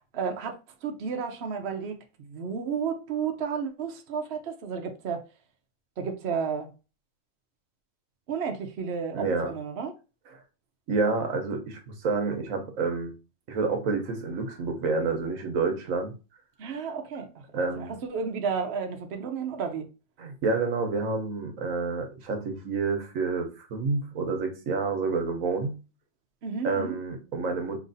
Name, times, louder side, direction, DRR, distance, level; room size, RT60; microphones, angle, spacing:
voice 1, 0.1-0.5 0.8-5.2 6.0-6.7 8.3-9.9 16.6-17.3 17.8-19.9 26.4-27.0, right 6 dB, 55° right, 0.9 m, -32 dB
voice 2, 9.1-9.5 10.9-13.1 13.5-16.1 17.5-17.9 20.2-25.8 26.6-27.8, right 4 dB, 85° right, 1.3 m, -28 dB
5.1 x 2.9 x 2.7 m
omnidirectional pair, 1.4 m